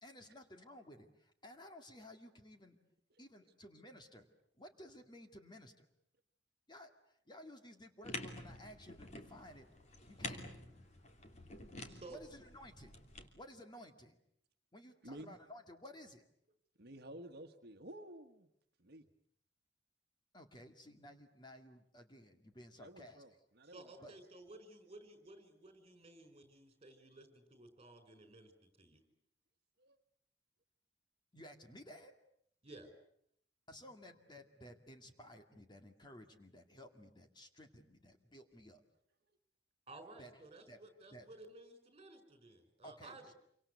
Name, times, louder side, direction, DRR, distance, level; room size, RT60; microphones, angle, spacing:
voice 1, 0.0-2.8 3.2-4.3 4.6-5.9 6.7-9.7 10.1-10.4 12.1-13.0 13.3-14.2 14.7-16.2 20.3-23.2 24.0-24.1 31.3-32.2 33.7-38.8 40.2-40.4 40.7-40.8 41.1-41.3 42.8-43.3, left 1 dB, 25° left, 5 dB, 2.1 m, -55 dB
sound 1, 8.0-13.3, left 2 dB, 40° left, 3.1 m, -49 dB
voice 2, 11.9-12.2 23.6-29.0 32.6-32.9 39.9-43.3, right 2 dB, 30° right, 9 dB, 5.2 m, -55 dB
voice 3, 15.0-15.4 16.8-18.5 18.8-19.1 22.7-24.1 29.8-30.0 39.2-39.4, right 1 dB, 60° right, 6 dB, 1.4 m, -53 dB
27.5 x 25.0 x 8.3 m, 0.70 s
head